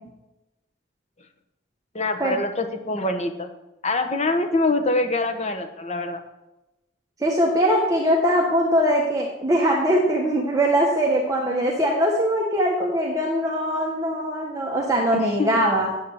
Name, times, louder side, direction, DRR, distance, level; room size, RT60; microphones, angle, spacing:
voice 1, 1.9-3.5 3.8-6.2 15.1-15.6, left 2 dB, 35° left, 6 dB, 1.1 m, -25 dB
voice 2, 7.2-15.9, equal, 20° right, -2 dB, 1.3 m, -21 dB
9.0 x 7.0 x 7.9 m, 0.98 s
head